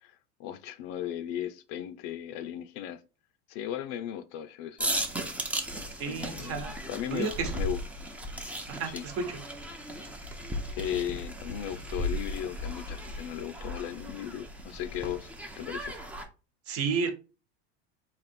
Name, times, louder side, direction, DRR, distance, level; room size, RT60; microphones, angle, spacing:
voice 1, 0.0-3.0 3.5-4.9 6.1-7.8 8.9-9.0 10.7-15.3 15.6-15.9, left 10 dB, 55° left, 0.6 m, -36 dB
sound 1, 4.8-16.3, equal, 5° right, 0.6 m, -36 dB
voice 2, 6.0-6.8 7.1-7.5 8.7-9.4 16.7-17.1, right 5 dB, 40° right, 1.1 m, -31 dB
4.1 x 3.0 x 4.3 m
supercardioid pair, 135°, 35 cm